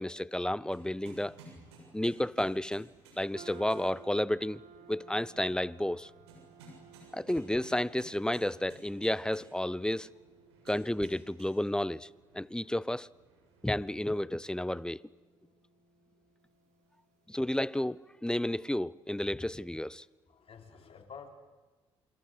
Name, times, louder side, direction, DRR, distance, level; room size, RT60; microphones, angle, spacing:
voice 1, 0.0-1.4 1.9-2.9 3.2-4.6 4.9-6.1 7.1-10.1 10.7-12.1 12.3-13.1 13.6-15.0 17.3-20.0, left 1 dB, 5° left, 0.8 m, -31 dB
sound 1, 0.7-14.1, right 2 dB, 90° right, 7.1 m, -57 dB
sound 2, 3.3-17.8, right 7 dB, 60° right, 5.5 m, -59 dB
voice 2, 20.2-21.3, left 6 dB, 45° left, 5.4 m, -50 dB
27.5 x 26.0 x 8.0 m
hypercardioid pair, 55°, 13 cm